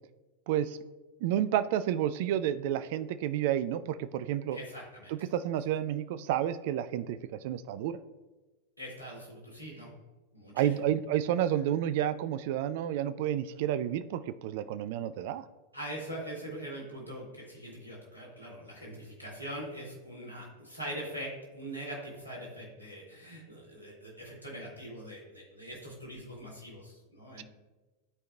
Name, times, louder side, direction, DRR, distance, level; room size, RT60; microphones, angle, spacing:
voice 1, 0.5-0.8 1.2-4.6 5.1-7.2 7.4-8.0 10.6-15.4 27.4-27.5, right 11 dB, 50° right, 13 dB, 0.3 m, -30 dB
voice 2, 4.5-5.1 8.8-9.9 10.3-10.7 15.7-27.4, right 1 dB, 90° right, -4 dB, 2.1 m, -42 dB
12.5 x 4.6 x 2.2 m, 1.2 s
figure-of-eight pair, 90°, 0 cm